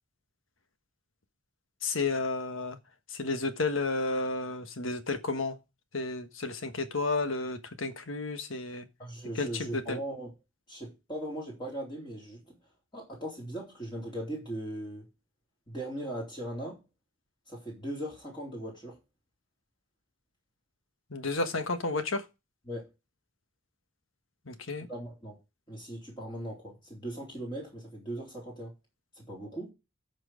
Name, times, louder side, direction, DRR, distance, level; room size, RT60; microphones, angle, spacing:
voice 1, 1.8-2.8 3.1-5.6 5.9-8.9 9.3-10.0 21.1-22.3 24.4-24.9, left 3 dB, 85° left, 1.4 m, -32 dB
voice 2, 9.0-10.3 10.7-12.6 12.9-15.1 15.7-16.8 17.5-19.0 22.7-22.9 24.9-25.4 25.7-28.7 29.2-29.7, right 1 dB, 25° left, 3.8 m, -39 dB
13.0 x 4.6 x 5.0 m
head